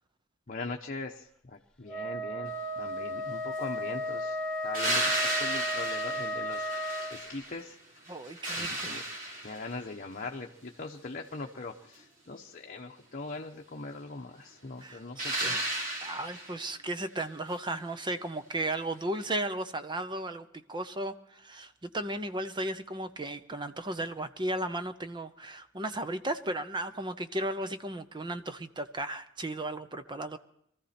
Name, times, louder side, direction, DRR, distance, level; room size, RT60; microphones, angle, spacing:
voice 1, 0.5-4.4 4.6-7.8 8.6-9.0 9.4-15.6, left 3 dB, 40° left, 1 dB, 1.0 m, -41 dB
Wind instrument woodwind instrument, 1.9-7.2, equal, 5° left, 3.0 m, -34 dB
sound 1, 4.7-7.7 8.1-9.8 15.2-16.6 19.2-19.3, right 1 dB, 40° right, 3.7 m, -34 dB
voice 2, 8.1-9.1 14.8-15.6 16.0-30.4, right 1 dB, 25° right, 10 dB, 0.8 m, -35 dB
23.5 x 14.0 x 4.3 m, 0.72 s
head